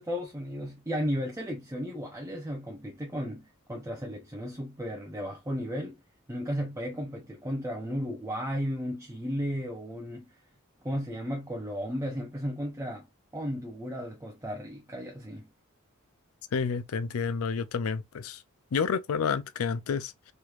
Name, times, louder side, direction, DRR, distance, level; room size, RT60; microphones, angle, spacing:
voice 1, 0.0-6.0 6.3-10.3 10.8-13.1 13.3-15.5, equal, 15° right, 0.6 m, -34 dB
voice 2, 16.5-18.4 18.7-20.1, left 5 dB, 70° left, 0.4 m, -29 dB
3.3 x 3.0 x 2.4 m
head